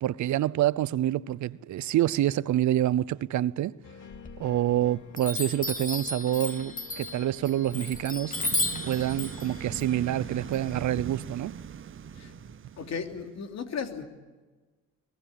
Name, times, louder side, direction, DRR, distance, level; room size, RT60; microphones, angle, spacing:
voice 1, 0.0-3.8 4.4-8.4 8.8-11.6, right 13 dB, 70° right, 0.8 m, -27 dB
sound 1, 3.8-11.0, left 7 dB, 80° left, 2.6 m, -48 dB
Chime, 4.1-4.8 5.2-11.0, left 2 dB, 25° left, 3.0 m, -34 dB
sound 2, 8.3-13.4, right 8 dB, 45° right, 0.9 m, -41 dB
voice 2, 12.8-14.1, left 6 dB, 60° left, 3.1 m, -35 dB
23.5 x 20.0 x 8.6 m
cardioid pair, 90°, 30 cm